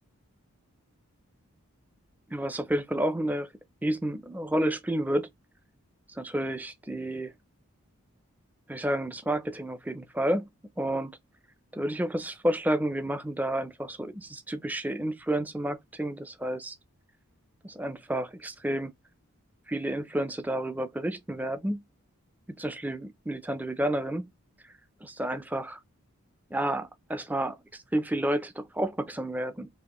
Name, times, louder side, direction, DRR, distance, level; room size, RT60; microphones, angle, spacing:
voice 1, 2.3-3.5 3.8-5.3 6.1-7.3 8.7-10.5 10.8-11.1 11.7-16.8 17.6-18.9 19.7-21.8 22.6-24.3 24.6-24.7 25.0-25.8 26.5-29.7, right 1 dB, 5° right, 0.3 m, -30 dB
4.1 x 2.9 x 3.0 m
head